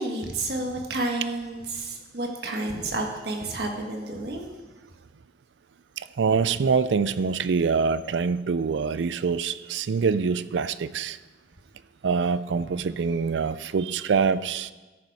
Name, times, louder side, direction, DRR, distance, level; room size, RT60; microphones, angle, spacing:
voice 1, 0.0-4.5 12.5-12.6, right 2 dB, 65° right, 2 dB, 1.5 m, -30 dB
voice 2, 6.0-11.2 12.0-14.7, right 5 dB, 85° right, 16 dB, 0.4 m, -25 dB
14.0 x 6.8 x 4.8 m, 1.2 s
head